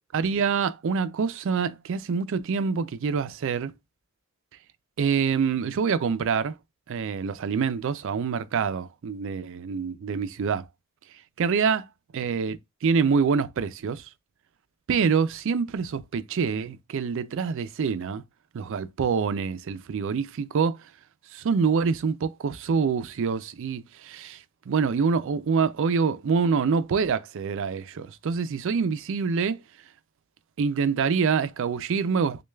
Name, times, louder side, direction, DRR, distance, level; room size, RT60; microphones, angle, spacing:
voice 1, 0.1-3.7 5.0-6.6 6.9-10.7 11.4-11.8 12.1-14.1 14.9-18.2 18.5-20.8 21.3-29.6 30.6-32.4, right 5 dB, 60° right, 0.4 m, -26 dB
6.2 x 2.2 x 2.2 m
head